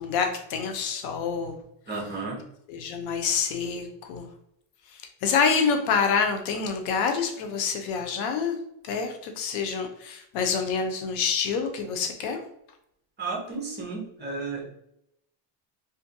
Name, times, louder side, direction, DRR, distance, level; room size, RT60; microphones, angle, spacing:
voice 1, 0.0-1.6 2.7-4.3 5.2-8.6 8.8-12.4, left 6 dB, 75° left, 5 dB, 0.6 m, -27 dB
voice 2, 1.9-2.4 13.2-14.7, right 3 dB, 20° right, -3 dB, 0.8 m, -33 dB
2.5 x 2.5 x 2.5 m, 0.76 s
cardioid pair, 150°, 48 cm